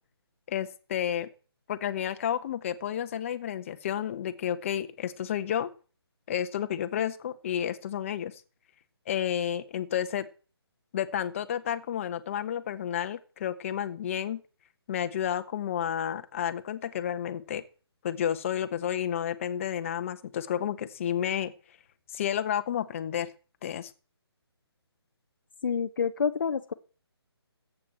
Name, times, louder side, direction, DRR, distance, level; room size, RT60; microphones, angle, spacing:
voice 1, 0.5-1.3 1.7-5.7 6.3-8.4 9.1-10.3 10.9-14.4 14.9-17.6 18.0-21.5 22.1-23.3 23.6-23.9, left 9 dB, 30° left, 10 dB, 1.2 m, -31 dB
voice 2, 25.6-26.7, left 6 dB, 50° left, 9 dB, 0.9 m, -28 dB
21.0 x 8.7 x 4.4 m, 0.38 s
figure-of-eight pair, 145°, 14 cm